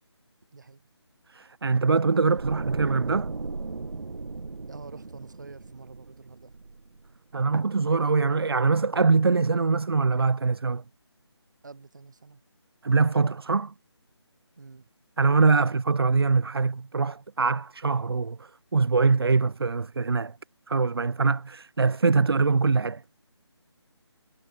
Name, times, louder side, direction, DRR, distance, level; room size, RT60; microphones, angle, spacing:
voice 1, 0.5-0.9 4.7-6.5 11.6-12.4 14.6-14.9, right 4 dB, 40° right, 6.1 m, -47 dB
voice 2, 1.3-3.3 7.3-10.8 12.8-13.7 15.2-20.4 20.7-23.0, right 4 dB, 60° right, 0.6 m, -23 dB
sound 1, 2.3-7.4 7.7-7.9, right 3 dB, 90° right, 1.1 m, -36 dB
figure-of-eight pair, 175°, 15 cm